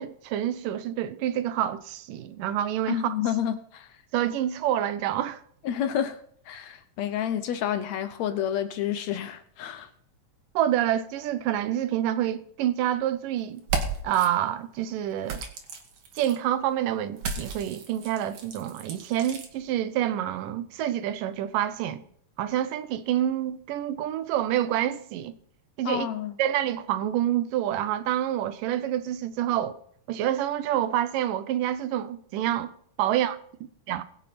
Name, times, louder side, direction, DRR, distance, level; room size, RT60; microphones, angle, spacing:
voice 1, 0.0-3.2 4.1-5.4 10.6-13.6 14.0-15.4 16.2-22.0 22.4-25.4 25.8-26.1 26.4-29.8 30.1-32.7 33.0-33.4 33.9-34.0, right 11 dB, 85° right, 2.5 m, -27 dB
voice 2, 2.9-3.9 5.6-6.2 6.5-9.9 25.9-26.3, left 10 dB, 75° left, 1.7 m, -29 dB
sound 1, 13.6-14.3 15.3-16.4 17.2-19.5, right 4 dB, 65° right, 2.8 m, -34 dB
21.0 x 7.1 x 4.2 m
omnidirectional pair, 3.8 m